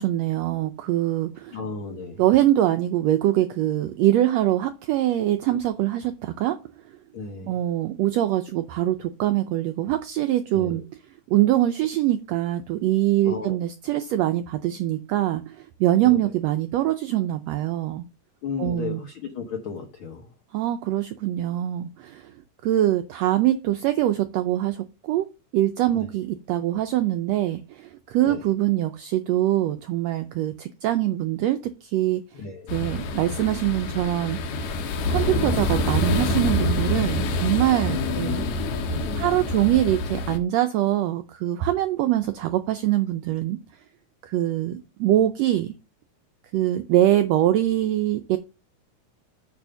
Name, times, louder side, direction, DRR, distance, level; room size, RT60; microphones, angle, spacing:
voice 1, 0.0-1.6 2.2-6.6 7.5-10.8 11.3-18.1 18.6-19.0 20.5-22.3 22.6-32.2 32.7-34.4 35.1-38.4 39.2-43.6 44.2-45.7 46.5-48.4, right 13 dB, 85° right, 9 dB, 1.5 m, -23 dB
voice 2, 1.5-2.2 7.1-7.6 10.5-10.8 13.2-13.6 16.0-16.2 18.4-20.3 25.9-26.1 28.2-28.4 32.3-32.9 37.9-39.4, left 5 dB, 60° left, 3 dB, 1.5 m, -34 dB
sound 1, 32.7-40.4, left 1 dB, 80° left, 2.6 m, -26 dB
8.8 x 3.4 x 6.7 m, 0.29 s
omnidirectional pair, 3.7 m